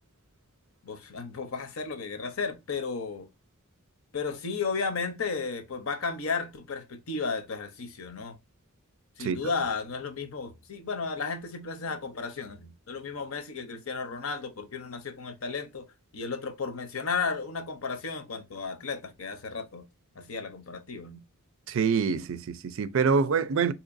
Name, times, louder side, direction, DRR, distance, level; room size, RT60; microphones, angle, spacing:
voice 1, 0.8-3.3 4.1-8.4 9.2-15.9 16.1-19.8 20.2-21.2, left 4 dB, 70° left, 0.7 m, -34 dB
voice 2, 21.7-23.7, right 5 dB, 65° right, 0.4 m, -25 dB
3.9 x 2.9 x 2.5 m
head